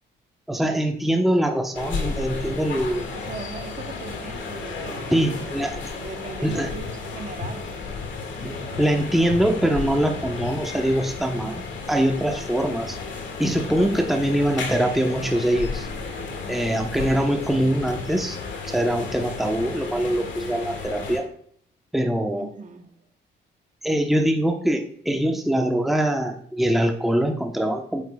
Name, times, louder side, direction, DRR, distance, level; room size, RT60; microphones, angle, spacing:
voice 1, 0.5-3.1 5.1-5.8 6.4-6.7 8.4-13.0 13.4-15.9 16.5-18.4 18.6-21.3 21.9-22.5 23.8-28.0, right 1 dB, ahead, 1.1 m, -23 dB
sound 1, 1.7-21.2, left 4 dB, 70° left, 2.1 m, -33 dB
voice 2, 3.1-7.8 22.3-23.1, right 4 dB, 40° right, 1.2 m, -39 dB
9.3 x 7.9 x 2.4 m
cardioid pair, 90°, 20 cm